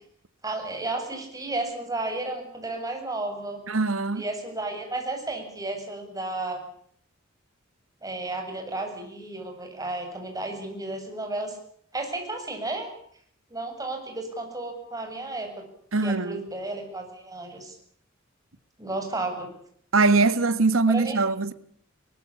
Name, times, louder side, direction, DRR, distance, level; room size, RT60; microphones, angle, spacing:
voice 1, 0.4-3.6 4.1-6.6 8.0-11.6 11.9-12.9 13.5-15.6 16.0-17.7 18.8-19.5 20.9-21.2, right 2 dB, 20° right, 7.5 m, -33 dB
voice 2, 3.7-4.2 15.9-16.4 19.9-21.5, right 3 dB, 85° right, 1.5 m, -22 dB
23.5 x 20.0 x 8.6 m
head